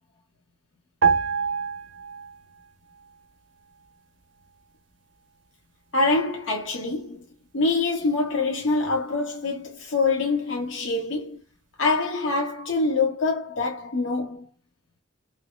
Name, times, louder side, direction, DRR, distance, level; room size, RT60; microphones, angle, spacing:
sound 1, 1.0-2.6 2.9-3.1, right 5 dB, 70° right, 0.5 m, -25 dB
voice 1, 5.9-7.3 7.5-11.4 11.8-14.5, left 3 dB, 75° left, 0.8 m, -25 dB
3.0 x 2.6 x 3.1 m
head